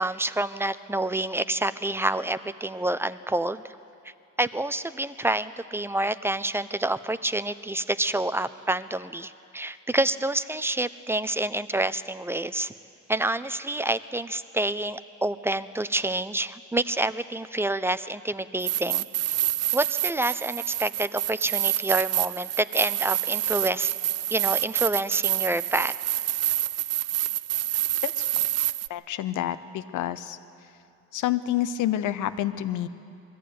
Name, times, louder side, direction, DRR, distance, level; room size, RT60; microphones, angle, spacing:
voice 1, 0.0-3.6 4.4-12.7 13.1-19.1 19.7-23.9 24.3-25.9, right 1 dB, 10° right, 14 dB, 0.6 m, -28 dB
sound 1, 18.6-28.9, right 14 dB, 55° right, 0.4 m, -27 dB
voice 2, 28.9-30.4 31.1-32.9, left 12 dB, 85° left, 12 dB, 0.9 m, -28 dB
21.5 x 14.5 x 9.3 m, 2.5 s
cardioid pair, 90°, 30 cm